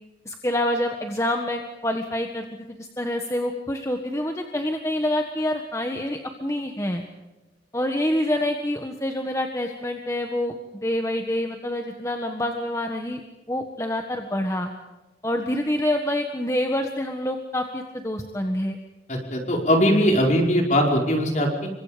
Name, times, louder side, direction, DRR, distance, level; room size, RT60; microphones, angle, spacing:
voice 1, 0.2-7.0 7.7-10.5 10.8-13.2 13.5-14.7 15.2-18.8, left 1 dB, 15° left, 4 dB, 1.5 m, -27 dB
voice 2, 19.1-21.7, equal, 40° left, 1 dB, 5.1 m, -20 dB
29.0 x 24.5 x 5.2 m, 1.1 s
head